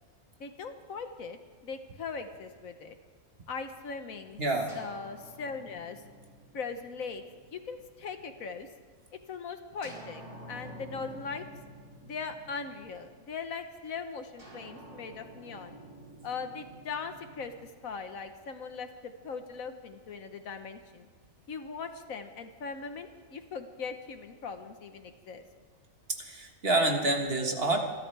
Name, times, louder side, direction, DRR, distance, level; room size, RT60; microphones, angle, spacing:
voice 1, 0.4-3.0 3.5-4.4 4.7-6.0 6.5-7.2 7.5-8.7 9.3-10.2 10.5-11.4 12.0-15.8 16.2-21.1 21.5-25.4, left 5 dB, 75° left, 7 dB, 1.5 m, -40 dB
voice 2, 4.4-4.8 26.2-27.8, right 2 dB, 45° right, 3 dB, 1.7 m, -27 dB
sound 1, 4.7-8.5 9.8-13.4 14.4-18.5, right 1 dB, 75° right, 5.0 m, -50 dB
27.0 x 13.0 x 3.4 m, 1.5 s
omnidirectional pair, 1.5 m